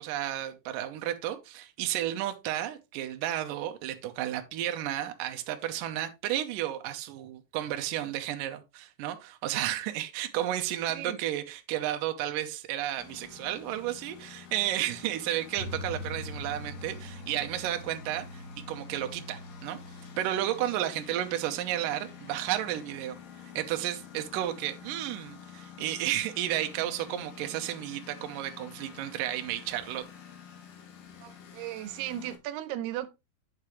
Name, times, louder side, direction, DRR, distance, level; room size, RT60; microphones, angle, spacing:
voice 1, 0.0-18.4 18.7-19.8 20.2-23.2 23.5-30.0, right 13 dB, 75° right, 2.3 m, -32 dB
Engine, 13.0-32.4, left 8 dB, 65° left, 3.1 m, -49 dB
sound 1, 15.6-22.5, left 1 dB, 25° right, 3.1 m, -44 dB
voice 2, 31.2-33.1, right 12 dB, 90° right, 2.8 m, -36 dB
8.6 x 6.7 x 3.1 m
omnidirectional pair, 4.5 m